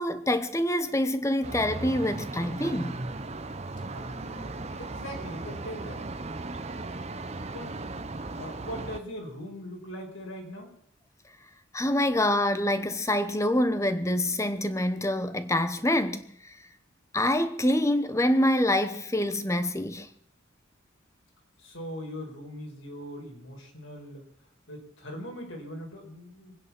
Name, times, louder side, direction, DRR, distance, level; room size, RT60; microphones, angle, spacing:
voice 1, 0.0-3.0 11.7-16.3 17.1-20.1, left 1 dB, 15° left, 1.0 m, -26 dB
sound 1, 1.4-9.0, right 2 dB, 30° right, 0.9 m, -37 dB
voice 2, 3.9-6.0 7.5-8.0 8.3-10.7 21.6-24.2 24.7-26.6, equal, 75° left, 5.0 m, -41 dB
23.5 x 9.9 x 6.0 m
head